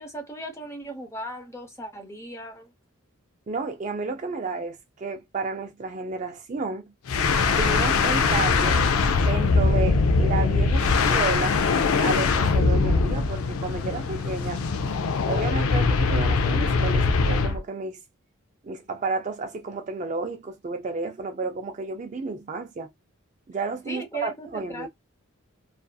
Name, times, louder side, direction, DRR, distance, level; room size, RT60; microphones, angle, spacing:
voice 1, 0.0-2.7 23.9-24.9, right 2 dB, 15° left, 0.6 m, -37 dB
voice 2, 3.5-6.9 7.5-8.8 9.2-11.6 12.0-14.6 15.3-18.0 18.6-22.9 23.5-24.9, right 4 dB, 35° right, 0.3 m, -31 dB
sound 1, 7.1-17.6, left 4 dB, 75° left, 0.4 m, -22 dB
2.6 x 2.4 x 2.2 m
head